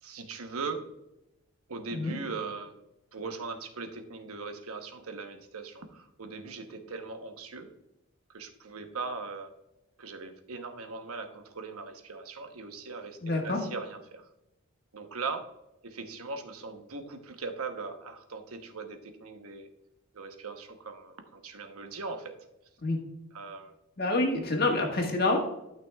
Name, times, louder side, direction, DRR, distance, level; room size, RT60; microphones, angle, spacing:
voice 1, 0.0-0.8 1.7-2.7 3.1-7.7 8.3-9.5 10.0-14.3 14.9-15.5 15.8-19.7 20.1-22.3 23.3-23.7, right 4 dB, 85° right, 6 dB, 1.0 m, -39 dB
voice 2, 13.2-13.6 22.8-23.0 24.0-25.4, left 2 dB, 45° left, 2 dB, 1.6 m, -27 dB
12.0 x 5.9 x 2.3 m, 0.90 s
head